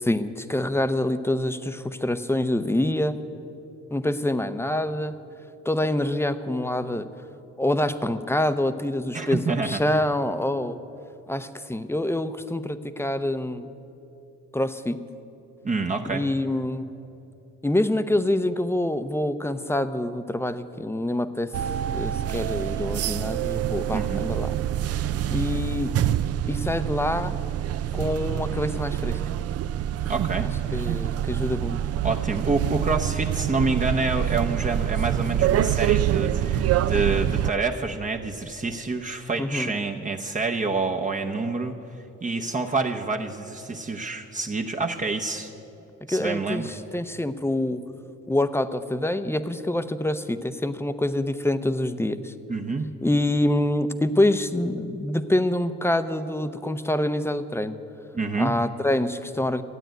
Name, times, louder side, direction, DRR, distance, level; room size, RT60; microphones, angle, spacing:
voice 1, 0.0-3.2 3.9-5.1 5.6-7.1 7.6-10.8 11.3-13.7 14.5-15.0 16.1-16.9 17.6-21.5 21.9-24.5 25.3-25.9 26.5-27.4 27.9-29.2 30.7-31.8 39.4-39.7 46.1-47.8 48.3-52.3 53.0-57.8 58.4-59.6, left 1 dB, 10° left, 11 dB, 0.6 m, -26 dB
voice 2, 9.1-10.0 15.6-16.3 23.9-24.2 30.1-30.5 32.0-41.8 42.2-45.5 46.1-46.7 52.5-52.9 58.1-58.6, right 3 dB, 25° right, 3 dB, 0.8 m, -27 dB
sound 1, 21.5-37.5, right 11 dB, 55° right, 0.5 m, -26 dB
13.5 x 9.0 x 9.1 m, 2.8 s
cardioid pair, 90°, 30 cm